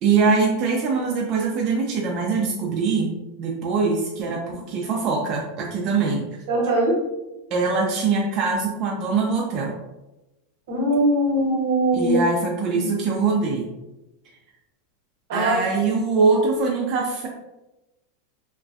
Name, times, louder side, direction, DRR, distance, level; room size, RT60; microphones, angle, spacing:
voice 1, 0.0-3.1 3.4-6.2 7.5-9.7 11.9-13.7 15.3-17.3, right 4 dB, 35° right, -2 dB, 0.3 m, -22 dB
voice 2, 6.5-7.0 10.7-12.2 12.7-12.8 15.3-15.6, right 1 dB, 70° right, -1 dB, 0.8 m, -21 dB
2.5 x 2.1 x 2.3 m, 1.0 s
supercardioid pair, 160°, 0 cm